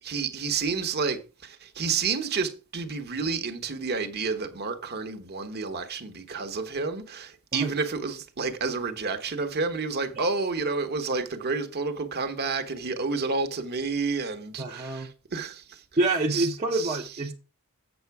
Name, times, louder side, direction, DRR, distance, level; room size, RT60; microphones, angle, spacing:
voice 1, 0.0-15.8 16.3-17.0, right 4 dB, 45° right, 1.1 m, -30 dB
voice 2, 14.6-15.1 16.0-17.3, right 2 dB, 30° right, 0.8 m, -27 dB
8.1 x 6.2 x 4.7 m
head